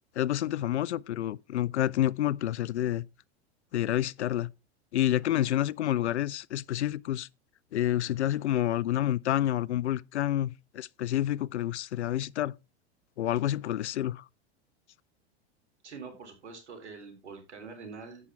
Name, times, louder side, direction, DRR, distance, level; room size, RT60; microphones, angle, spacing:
voice 1, 0.2-3.1 3.7-4.5 4.9-7.3 7.7-12.5 13.2-14.2, left 12 dB, 90° left, 0.5 m, -28 dB
voice 2, 15.8-18.3, right 4 dB, 85° right, 3.8 m, -45 dB
11.0 x 8.6 x 3.5 m
hypercardioid pair, 95°, 33 cm